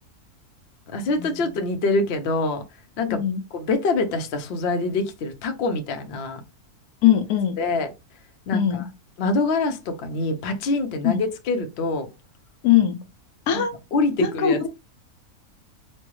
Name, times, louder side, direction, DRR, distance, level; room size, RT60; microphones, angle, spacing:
voice 1, 0.9-2.6 3.0-3.2 3.5-6.4 7.6-7.9 8.5-8.9 9.2-12.1 13.5-13.7 13.9-14.7, left 3 dB, 55° left, 0.8 m, -25 dB
voice 2, 3.1-3.4 7.0-7.6 8.5-8.9 11.0-11.2 12.6-13.0 13.5-13.7 14.2-14.7, left 10 dB, 80° left, 1.0 m, -20 dB
4.2 x 2.2 x 3.0 m
omnidirectional pair, 1.6 m